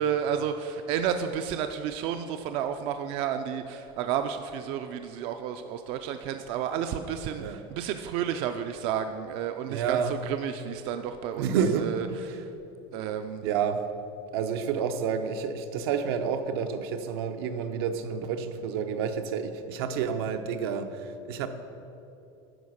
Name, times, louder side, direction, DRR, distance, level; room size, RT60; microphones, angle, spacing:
voice 1, 0.0-11.5 11.8-12.4 12.9-13.4, right 8 dB, 45° right, 7 dB, 0.4 m, -31 dB
voice 2, 9.7-10.2 11.4-12.5 13.4-13.9 14.3-21.5, right 6 dB, 75° right, 8 dB, 0.7 m, -29 dB
11.0 x 4.7 x 6.4 m, 2.8 s
cardioid pair, 165°, 13 cm